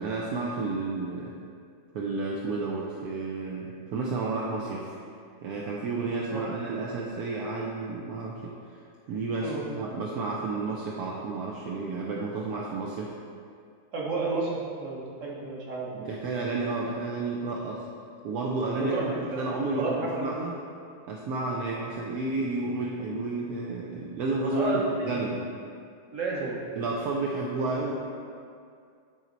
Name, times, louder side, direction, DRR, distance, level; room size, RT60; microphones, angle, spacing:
voice 1, 0.0-1.3 1.9-5.0 5.4-8.6 9.1-13.1 15.9-17.8 18.2-20.5 21.1-25.4 26.8-27.9, right 3 dB, 65° right, -3 dB, 1.0 m, -31 dB
voice 2, 13.9-16.0 18.8-19.5 19.8-20.3 24.5-25.2 26.1-26.7, right 3 dB, 45° right, -3 dB, 1.5 m, -31 dB
10.5 x 4.4 x 4.0 m, 2.3 s
omnidirectional pair, 2.1 m